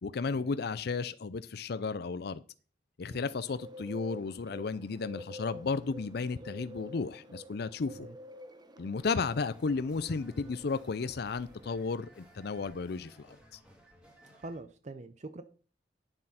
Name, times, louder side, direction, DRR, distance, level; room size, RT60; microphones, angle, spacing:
voice 1, 0.0-2.4 3.0-8.1 8.8-13.6, left 4 dB, 60° left, 0.5 m, -34 dB
Bird, 3.5-11.8, left 1 dB, 25° right, 1.0 m, -49 dB
sound 1, 9.0-14.6, equal, 5° right, 2.9 m, -58 dB
voice 2, 14.3-15.4, right 2 dB, 40° right, 0.6 m, -45 dB
9.9 x 7.6 x 5.8 m
head